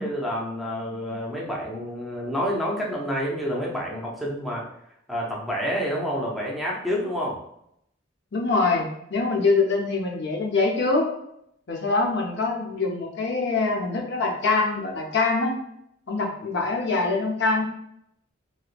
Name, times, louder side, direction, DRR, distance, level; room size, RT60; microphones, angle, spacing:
voice 1, 0.0-4.7 5.1-7.4, equal, ahead, -4 dB, 0.6 m, -28 dB
voice 2, 8.3-11.1 11.7-15.5 16.1-17.7, left 3 dB, 65° left, 0 dB, 0.7 m, -24 dB
3.1 x 2.9 x 2.4 m, 0.75 s
head